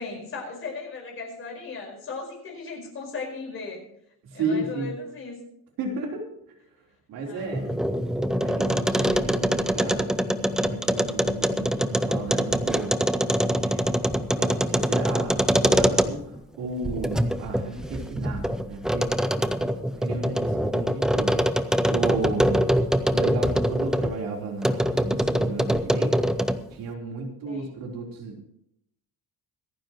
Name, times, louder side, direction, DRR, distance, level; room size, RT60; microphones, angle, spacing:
voice 1, 0.0-3.8 4.3-5.4 7.3-8.0 27.4-27.7, left 4 dB, 35° left, 1 dB, 4.9 m, -37 dB
voice 2, 4.2-4.9 5.8-6.2 7.1-7.8 8.4-10.1 10.4-13.1 13.6-13.9 14.4-16.2 16.6-19.1 20.0-22.7 23.1-26.1 26.7-28.5, right 3 dB, 70° right, 0 dB, 3.9 m, -33 dB
sound 1, 7.4-16.4 16.8-24.1 24.6-26.7, equal, ahead, 0.4 m, -24 dB
26.0 x 9.7 x 3.1 m, 0.75 s
cardioid pair, 180°, 35 cm